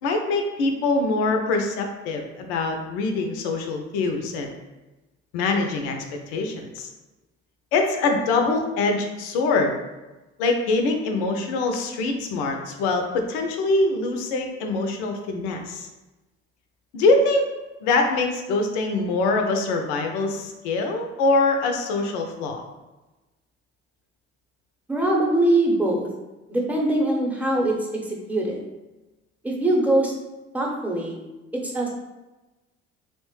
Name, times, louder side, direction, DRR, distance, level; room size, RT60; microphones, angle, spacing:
voice 1, 0.0-4.5 5.3-6.0 6.3-6.9 7.7-9.8 10.4-15.9 16.9-17.5 17.8-22.6, left 3 dB, 80° left, 4 dB, 0.5 m, -24 dB
voice 2, 24.9-26.1 26.5-28.6 29.4-30.1 30.5-31.2 31.5-31.9, right 1 dB, 5° right, -2 dB, 0.7 m, -22 dB
2.9 x 2.1 x 3.1 m, 1.1 s
hypercardioid pair, 60°, 33 cm